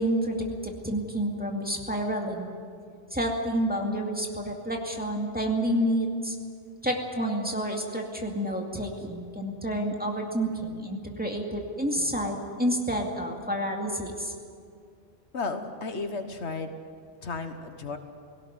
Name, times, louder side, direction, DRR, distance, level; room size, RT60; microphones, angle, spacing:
voice 1, 0.0-2.5 3.1-6.4 6.8-14.3, equal, 10° right, 0 dB, 2.3 m, -29 dB
voice 2, 15.3-16.7 17.2-18.0, left 4 dB, 80° left, 7 dB, 1.6 m, -33 dB
18.0 x 17.0 x 9.5 m, 2.3 s
omnidirectional pair, 1.1 m